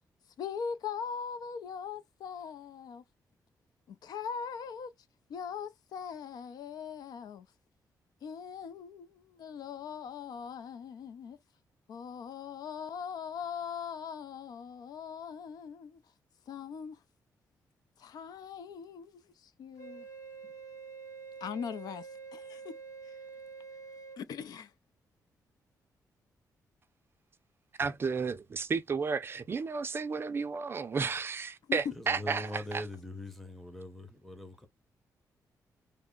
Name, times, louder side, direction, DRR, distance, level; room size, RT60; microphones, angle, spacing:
voice 1, 0.4-3.0 3.9-4.9 5.3-7.5 8.2-11.4 11.9-16.0 16.5-17.0 18.0-20.1 21.4-22.8 24.2-24.7 31.7-31.8, left 7 dB, 75° left, 0.5 m, -41 dB
Wind instrument woodwind instrument, 19.8-24.2, right 5 dB, 50° left, 1.8 m, -47 dB
voice 2, 27.8-32.9, right 5 dB, 35° right, 0.4 m, -33 dB
voice 3, 32.0-34.7, left 1 dB, ahead, 0.7 m, -42 dB
3.3 x 2.0 x 3.7 m
cardioid pair, 130°, 7 cm